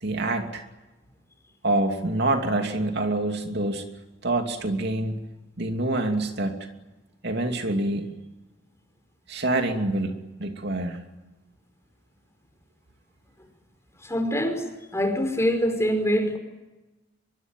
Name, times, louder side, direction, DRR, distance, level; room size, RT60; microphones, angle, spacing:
voice 1, 0.0-0.6 1.6-3.8 4.2-5.2 5.6-6.6 7.2-8.1 9.3-11.0, right 2 dB, 60° right, 5 dB, 2.8 m, -26 dB
voice 2, 14.0-16.4, equal, 15° left, 6 dB, 5.2 m, -24 dB
24.0 x 23.5 x 9.1 m, 1.1 s
head